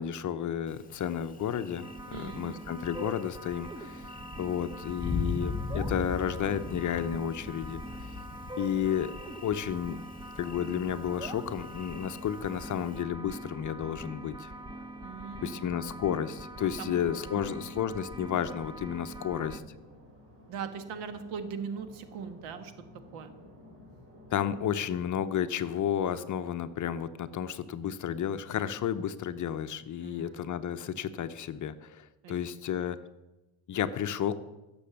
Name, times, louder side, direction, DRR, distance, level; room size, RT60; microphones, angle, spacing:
voice 1, 0.0-7.8 8.6-9.1 9.4-10.0 10.4-14.5 15.4-19.6 24.3-33.0 33.7-34.4, left 9 dB, 40° left, 11 dB, 0.7 m, -32 dB
Thunder, 0.7-13.0, left 4 dB, 15° left, 1.3 m, -41 dB
sound 1, 1.8-19.6, right 1 dB, 10° right, 0.7 m, -43 dB
voice 2, 2.1-2.6 15.0-15.9 16.8-16.9 17.3-17.6 20.5-22.7 23.1-23.3 30.0-30.5 32.2-32.3, right 6 dB, 85° right, 9 dB, 1.6 m, -40 dB
sound 2, 10.8-25.2, left 1 dB, 25° right, 4.9 m, -54 dB
15.5 x 7.0 x 6.8 m, 1.1 s
cardioid pair, 125°, 49 cm